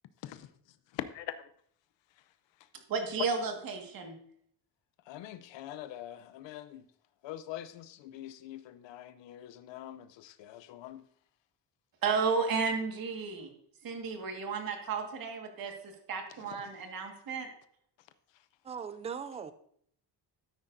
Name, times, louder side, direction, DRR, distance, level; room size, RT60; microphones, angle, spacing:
voice 1, 0.9-1.5 5.1-6.9 7.2-11.0 16.4-16.7, left 12 dB, 80° left, 0.7 m, -44 dB
voice 2, 2.9-4.1 12.0-13.5 13.8-17.5, right 5 dB, 50° right, 1.8 m, -33 dB
voice 3, 18.6-19.5, right 6 dB, 15° right, 0.3 m, -39 dB
13.0 x 9.6 x 2.6 m
cardioid pair, 165°, 43 cm